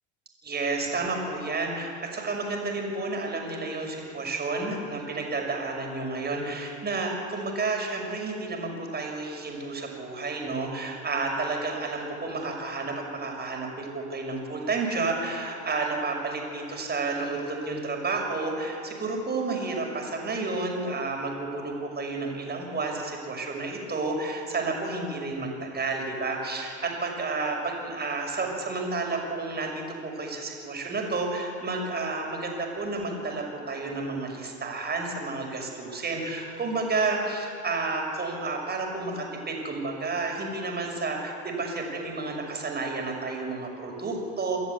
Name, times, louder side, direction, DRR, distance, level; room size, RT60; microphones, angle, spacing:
voice 1, 0.4-44.6, right 3 dB, 25° right, 2 dB, 6.1 m, -31 dB
28.5 x 14.0 x 8.4 m, 2.6 s
figure-of-eight pair, 65°, 36 cm